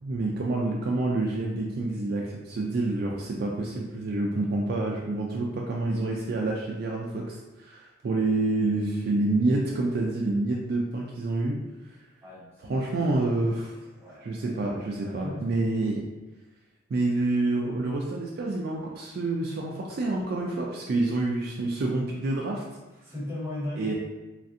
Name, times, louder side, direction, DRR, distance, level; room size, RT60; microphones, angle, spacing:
voice 1, 0.0-11.6 12.6-13.7 14.2-16.0 16.9-22.6 23.8-23.9, right 2 dB, 45° right, -2 dB, 0.3 m, -28 dB
voice 2, 12.2-12.8 13.1-14.5 15.0-15.6 23.0-23.9, left 1 dB, 10° right, -6 dB, 0.7 m, -38 dB
3.1 x 2.5 x 2.7 m, 1.1 s
head